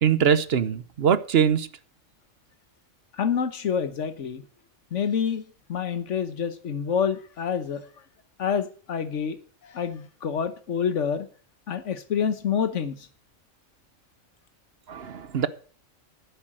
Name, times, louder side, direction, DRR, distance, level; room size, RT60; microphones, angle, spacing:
voice 1, 0.0-1.7 14.9-15.5, right 7 dB, 55° right, 0.9 m, -22 dB
voice 2, 3.1-4.4 4.9-7.9 8.4-9.4 9.6-11.3 11.7-13.1, left 7 dB, 65° left, 1.4 m, -27 dB
10.5 x 8.2 x 7.7 m
omnidirectional pair, 1.4 m